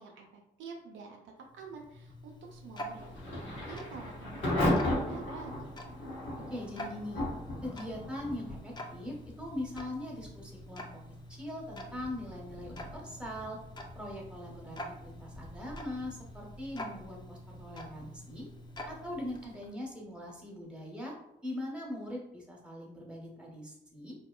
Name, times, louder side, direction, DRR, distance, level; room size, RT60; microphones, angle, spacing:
voice 1, 0.0-5.7, right 4 dB, 85° right, 0 dB, 0.5 m, -48 dB
Tick-tock, 1.5-19.8, equal, 25° left, 0.4 m, -47 dB
Thunder / Rain, 2.9-19.7, left 1 dB, 80° left, 0.9 m, -38 dB
voice 2, 6.5-7.3 7.6-10.9 11.3-13.6 13.9-18.5 18.9-21.1 21.4-24.2, left 1 dB, 5° right, -2 dB, 1.0 m, -41 dB
2.8 x 2.1 x 2.2 m, 0.84 s
supercardioid pair, 45°, 19 cm